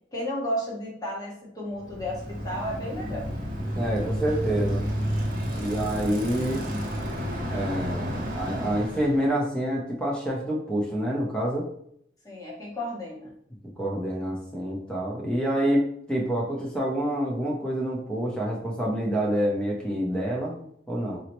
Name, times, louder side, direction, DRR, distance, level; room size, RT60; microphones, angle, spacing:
voice 1, 0.1-3.3 12.2-13.3, equal, 20° left, -4 dB, 1.0 m, -33 dB
Bicycle, 1.8-9.3, equal, 50° right, 0.7 m, -31 dB
voice 2, 3.7-4.9 5.5-6.6 7.5-11.7 13.8-21.2, right 1 dB, 5° left, -2 dB, 0.6 m, -27 dB
4.0 x 2.0 x 2.9 m, 0.69 s
head